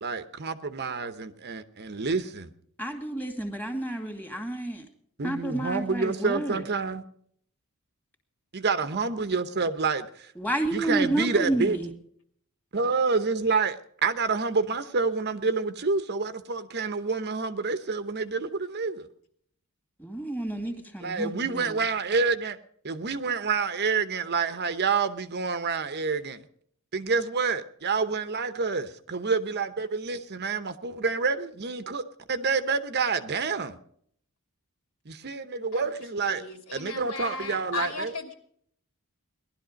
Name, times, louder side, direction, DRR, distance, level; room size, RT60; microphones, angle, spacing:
voice 1, 0.0-2.5 5.2-7.0 8.5-10.3 10.7-11.8 12.7-19.1 21.0-22.6 22.8-26.4 26.9-32.0 32.3-33.8 35.1-36.4 36.7-38.1, right 4 dB, 50° right, 0.9 m, -28 dB
voice 2, 2.8-4.8 5.2-6.6 10.4-11.9 20.0-21.6, right 1 dB, 10° left, 2.2 m, -30 dB
voice 3, 36.2-38.3, left 3 dB, 65° left, 2.9 m, -36 dB
18.5 x 12.0 x 5.2 m
head